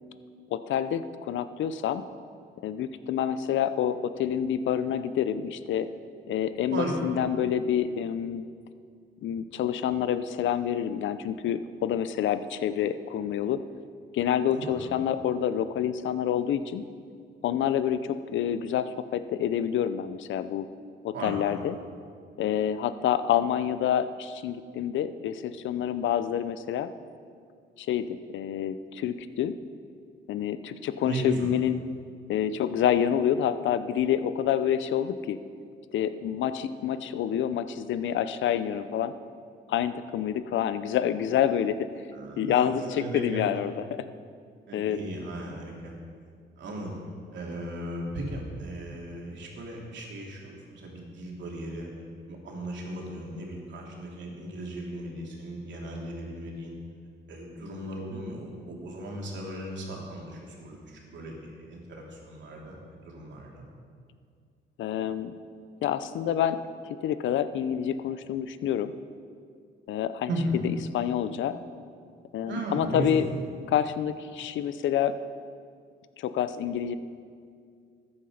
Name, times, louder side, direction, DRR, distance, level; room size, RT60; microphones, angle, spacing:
voice 1, 0.5-2.0 2.6-5.9 6.3-8.5 9.2-13.6 14.1-16.8 17.4-20.7 21.0-21.8 22.4-26.9 27.8-29.5 30.3-31.8 32.3-35.4 35.9-39.1 39.7-41.8 42.4-43.7 44.7-45.0 64.8-65.3 65.8-66.6 67.0-68.9 69.9-70.3 70.9-71.6 72.3-73.3 73.7-75.1 76.2-77.0, left 9 dB, 75° left, 13 dB, 0.7 m, -27 dB
voice 2, 14.5-15.0 21.1-21.6 31.0-31.5 42.1-43.6 44.7-45.9 46.6-47.0 47.3-51.9 52.3-56.7 57.3-63.7 70.3-70.6 72.4-73.3, right 1 dB, 65° right, -1 dB, 2.9 m, -36 dB
14.0 x 9.8 x 5.0 m, 2.2 s
cardioid pair, 90°, 20 cm